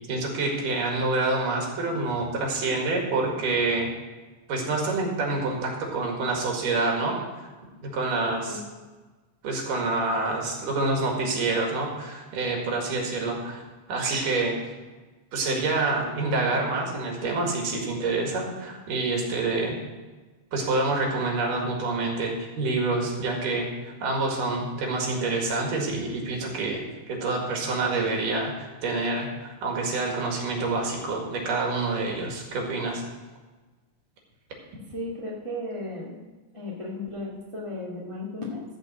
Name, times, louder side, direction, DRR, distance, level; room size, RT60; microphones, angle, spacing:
voice 1, 0.1-3.9 4.5-7.2 7.8-8.6 9.4-13.6 13.9-14.6 15.3-19.8 20.5-26.8 27.1-33.0, right 3 dB, 80° right, 0 dB, 3.6 m, -27 dB
voice 2, 34.9-36.2 36.5-38.6, left 2 dB, 15° left, -4 dB, 1.2 m, -35 dB
13.5 x 5.4 x 7.2 m, 1.2 s
omnidirectional pair, 3.7 m